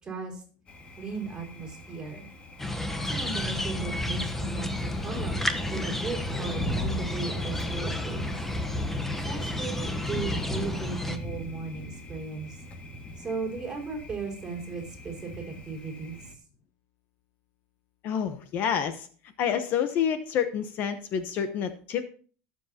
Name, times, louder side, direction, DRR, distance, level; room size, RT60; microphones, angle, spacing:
voice 1, 0.0-0.4 1.0-2.3 3.1-5.3 5.7-8.3 9.2-12.6 13.2-16.4, right 4 dB, 15° right, -1 dB, 5.0 m, -36 dB
Thunder, 0.7-16.3, left 1 dB, 25° left, 2.0 m, -40 dB
sound 1, 2.6-11.2, left 1 dB, 5° left, 1.0 m, -31 dB
voice 2, 18.0-19.1 19.4-22.0, left 8 dB, 45° left, 9 dB, 1.0 m, -28 dB
20.0 x 7.4 x 2.9 m, 0.41 s
supercardioid pair, 135°, 4 cm